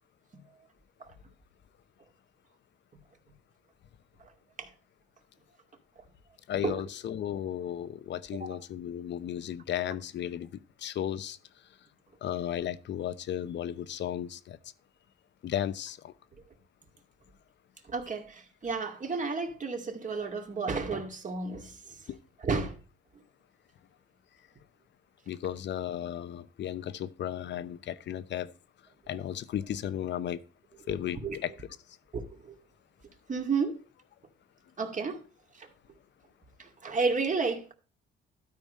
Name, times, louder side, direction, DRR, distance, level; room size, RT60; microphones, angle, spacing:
voice 1, 6.5-11.4 12.2-14.6 15.4-16.1 22.1-22.2 25.3-28.5 29.1-30.4 30.9-31.5, left 10 dB, 65° left, 0.8 m, -34 dB
voice 2, 17.9-21.8 22.4-22.7 30.9-31.4 32.1-32.6 33.3-33.8 34.8-35.2 35.6-35.7 36.6-37.7, right 4 dB, 40° right, 2.3 m, -32 dB
12.5 x 4.9 x 5.5 m
cardioid pair, 90°, 20 cm